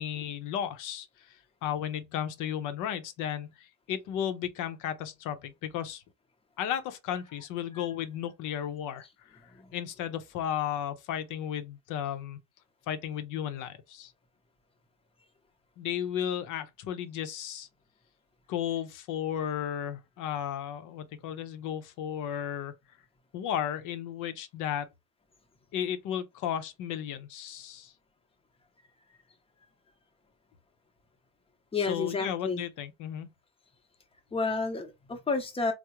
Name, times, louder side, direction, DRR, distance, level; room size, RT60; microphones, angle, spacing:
voice 1, 0.0-1.4 1.6-6.0 6.6-9.1 9.7-12.4 12.9-14.1 15.8-17.7 18.5-22.7 23.3-24.9 25.7-27.9 31.9-33.3, left 10 dB, 75° left, 0.6 m, -34 dB
voice 2, 31.7-32.6 34.3-35.7, left 4 dB, 20° left, 0.7 m, -31 dB
3.5 x 2.0 x 2.9 m
cardioid pair, 105°, 32 cm